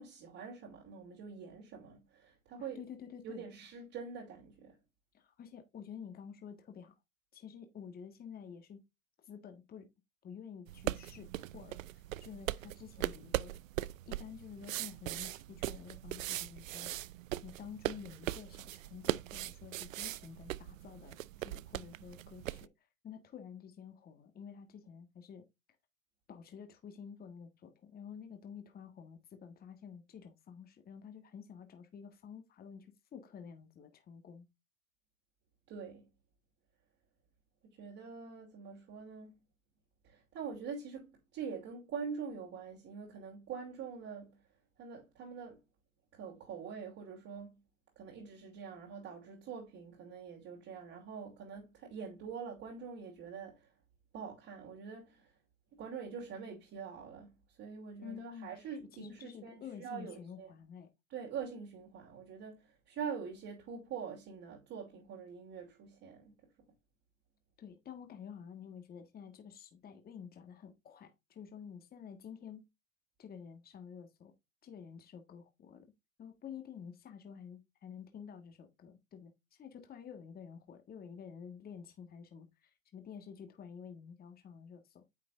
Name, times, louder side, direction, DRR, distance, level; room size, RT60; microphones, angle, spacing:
voice 1, 0.0-2.8 3.2-4.8 35.7-36.1 37.7-39.4 40.0-44.4 44.8-45.6 46.1-47.6 48.0-53.7 54.1-55.3 55.7-60.5 61.1-66.3, right 6 dB, 35° right, 2.9 m, -45 dB
voice 2, 2.6-3.4 5.1-6.9 7.3-8.8 9.2-9.9 10.2-13.5 14.0-17.1 17.4-22.7 23.0-25.4 26.3-34.5 58.0-60.9 67.6-72.7 73.2-74.3 74.6-75.8 76.2-85.0, left 7 dB, 25° left, 1.6 m, -50 dB
sound 1, 10.7-22.7, right 15 dB, 75° right, 0.6 m, -40 dB
9.5 x 5.8 x 2.5 m
hypercardioid pair, 105°, 40 cm